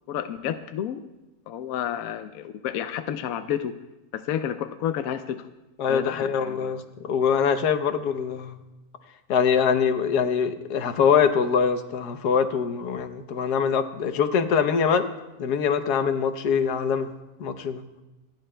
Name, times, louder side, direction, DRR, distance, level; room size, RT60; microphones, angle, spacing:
voice 1, 0.1-1.0 1.5-3.8 4.1-5.5 5.9-6.8, left 9 dB, 70° left, 9 dB, 1.0 m, -30 dB
voice 2, 5.8-8.6 9.3-15.1 15.4-17.1 17.4-17.8, left 6 dB, 90° left, 9 dB, 1.4 m, -23 dB
27.5 x 10.5 x 2.2 m, 1.0 s
omnidirectional pair, 1.6 m